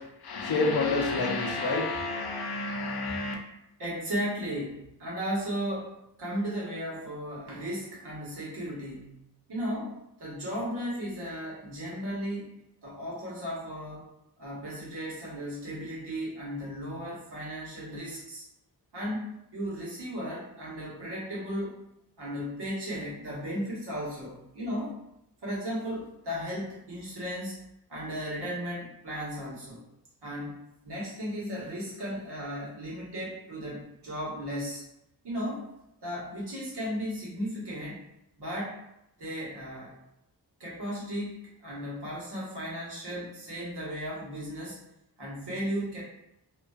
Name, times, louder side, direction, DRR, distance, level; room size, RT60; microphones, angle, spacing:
voice 1, 0.0-3.3, left 3 dB, 70° left, 1 dB, 0.5 m, -29 dB
voice 2, 3.8-12.6 12.8-14.1 14.4-18.4 18.9-21.8 22.2-25.0 25.4-27.6 27.9-29.8 30.2-34.8 35.2-35.7 36.0-38.0 38.4-38.8 39.2-39.9 40.6-44.8 45.2-46.0, equal, 85° right, -7 dB, 1.1 m, -35 dB
2.4 x 2.2 x 2.2 m, 0.83 s
wide cardioid pair, 165°, 39 cm